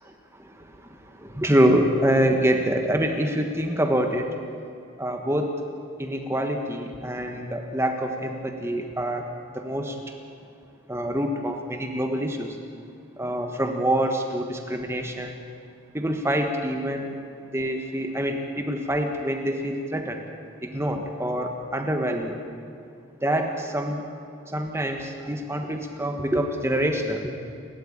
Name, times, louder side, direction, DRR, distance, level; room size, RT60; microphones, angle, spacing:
voice 1, 0.3-4.3 5.0-5.5 6.0-9.3 9.5-10.0 10.9-12.6 13.2-15.3 15.9-17.2 17.5-20.2 20.6-22.4 23.2-24.0 24.5-27.3, right 1 dB, 15° right, 4 dB, 1.4 m, -26 dB
30.0 x 12.5 x 8.7 m, 2.5 s
head